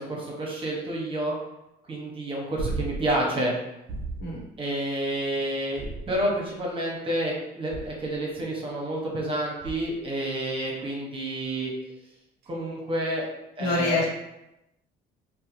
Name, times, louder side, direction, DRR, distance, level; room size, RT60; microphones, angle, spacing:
voice 1, 0.0-1.3 1.9-3.5 4.6-11.7 12.5-13.3 13.6-14.0, right 1 dB, 30° right, -2 dB, 0.8 m, -29 dB
sound 1, 2.6-3.2 3.9-4.4 5.7-6.5 7.7-8.2 9.6-10.0 12.4-12.5, right 3 dB, 65° right, 0.4 m, -35 dB
voice 2, 13.6-14.0, left 2 dB, 85° left, -3 dB, 0.8 m, -25 dB
2.5 x 2.1 x 2.9 m, 0.90 s
cardioid pair, 110°, 17 cm